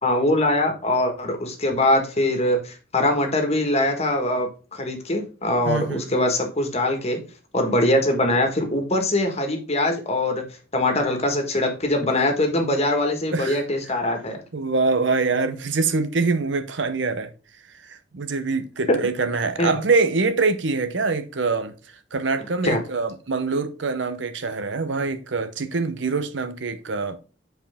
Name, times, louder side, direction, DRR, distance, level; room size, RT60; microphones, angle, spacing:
voice 1, 0.0-7.2 7.5-10.4 10.7-14.4 19.6-19.8 22.6-22.8, left 1 dB, 35° left, 1.5 m, -22 dB
voice 2, 5.7-6.2 13.3-13.6 14.5-17.3 17.8-21.7 22.1-27.2, right 4 dB, 70° right, 0.7 m, -24 dB
7.9 x 4.5 x 3.5 m
head